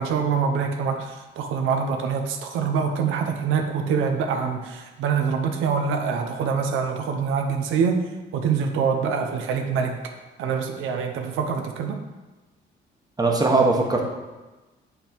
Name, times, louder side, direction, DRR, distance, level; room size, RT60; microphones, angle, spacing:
voice 1, 0.0-8.0 8.3-9.9 10.4-12.0, right 6 dB, 90° right, 4 dB, 0.7 m, -25 dB
voice 2, 13.2-14.0, right 3 dB, 20° right, 0 dB, 1.2 m, -19 dB
7.9 x 3.6 x 4.5 m, 1.2 s
cardioid pair, 90°, 20 cm